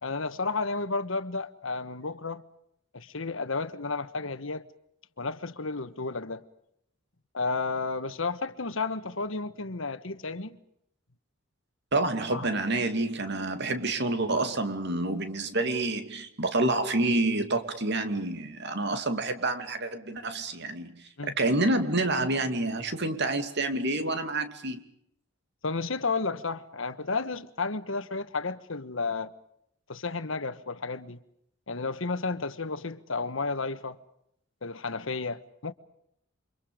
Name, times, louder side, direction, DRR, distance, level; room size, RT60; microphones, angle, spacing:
voice 1, 0.0-2.4 2.9-4.7 5.2-6.4 7.3-10.6 12.3-12.5 21.2-21.4 25.6-29.3 29.9-31.2 31.7-34.0 34.6-35.7, left 3 dB, 70° left, 1.4 m, -32 dB
voice 2, 11.9-24.8, right 2 dB, 55° right, 2.7 m, -28 dB
29.0 x 25.5 x 5.2 m
head